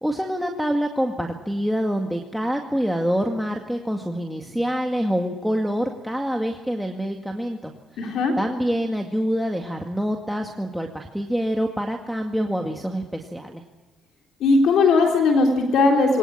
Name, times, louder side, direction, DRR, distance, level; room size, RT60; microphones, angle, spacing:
voice 1, 0.0-7.7 8.4-13.6, equal, ahead, 2 dB, 2.0 m, -26 dB
voice 2, 8.0-8.3 14.4-16.2, left 3 dB, 80° left, 1 dB, 3.7 m, -18 dB
23.5 x 19.5 x 8.8 m, 1.2 s
cardioid pair, 90°, 0 cm